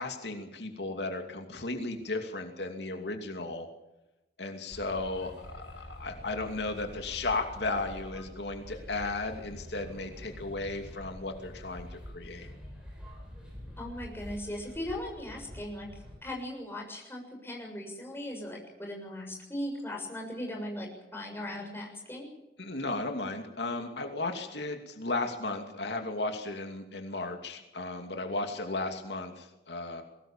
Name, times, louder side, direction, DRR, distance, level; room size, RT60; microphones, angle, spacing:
voice 1, 0.0-3.7 4.4-12.5 22.6-30.0, left 2 dB, 80° left, 5 dB, 2.6 m, -35 dB
sound 1, 4.7-16.2, left 1 dB, 5° right, 7.8 m, -46 dB
voice 2, 13.8-15.9 16.2-22.3, left 1 dB, 15° left, 0 dB, 6.8 m, -38 dB
22.5 x 18.5 x 7.4 m, 0.98 s
head